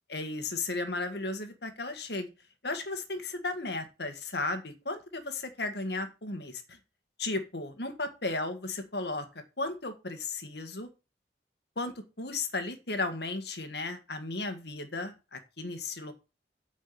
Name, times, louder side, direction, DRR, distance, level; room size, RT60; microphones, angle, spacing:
voice 1, 0.1-2.3 2.6-6.8 7.2-9.3 9.6-10.9 11.8-16.1, left 2 dB, 70° left, 8 dB, 1.8 m, -35 dB
9.1 x 5.2 x 7.0 m, 0.29 s
head